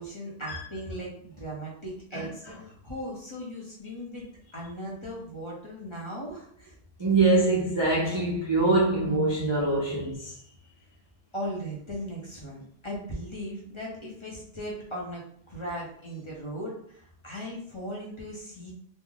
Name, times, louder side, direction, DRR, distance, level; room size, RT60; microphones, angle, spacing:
voice 1, 0.0-4.3 4.5-6.7 11.3-18.7, equal, 30° left, 0.7 m, -38 dB
voice 2, 7.0-10.3, right 2 dB, 40° right, 0.4 m, -24 dB
3.1 x 2.1 x 3.7 m
omnidirectional pair, 1.3 m